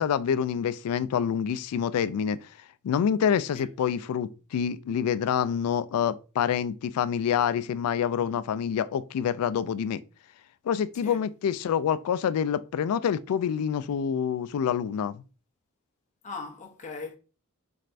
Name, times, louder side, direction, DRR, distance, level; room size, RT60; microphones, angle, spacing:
voice 1, 0.0-2.4 2.8-10.0 10.7-15.2, left 8 dB, 80° left, 0.3 m, -27 dB
voice 2, 16.2-17.2, left 4 dB, 35° left, 0.5 m, -39 dB
4.3 x 3.2 x 2.5 m
head